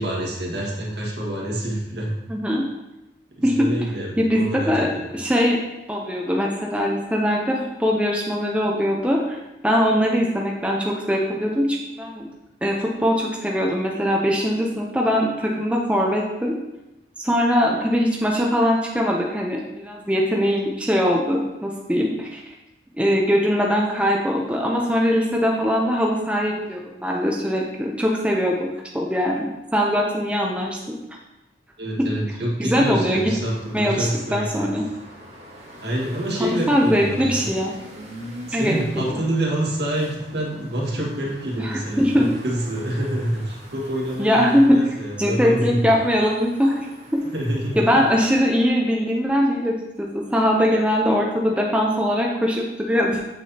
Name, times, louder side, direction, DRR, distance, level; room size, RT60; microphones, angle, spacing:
voice 1, 0.0-2.2 3.3-5.1 31.8-34.7 35.8-37.5 38.5-45.8 47.3-47.9, right 1 dB, 70° right, -3 dB, 1.7 m, -27 dB
voice 2, 2.3-2.6 3.4-3.7 4.2-5.6 5.9-12.3 12.6-16.5 17.2-22.4 23.0-28.7 28.9-30.8 32.0-32.1 32.6-33.3 33.7-34.8 36.4-37.7 38.5-39.2 41.6-42.3 44.2-44.8 45.2-46.9 47.1-47.2 47.8-53.2, equal, 5° right, -1 dB, 0.6 m, -21 dB
sound 1, 32.8-48.7, equal, 40° right, 1.6 m, -43 dB
7.6 x 6.1 x 2.8 m, 0.97 s
head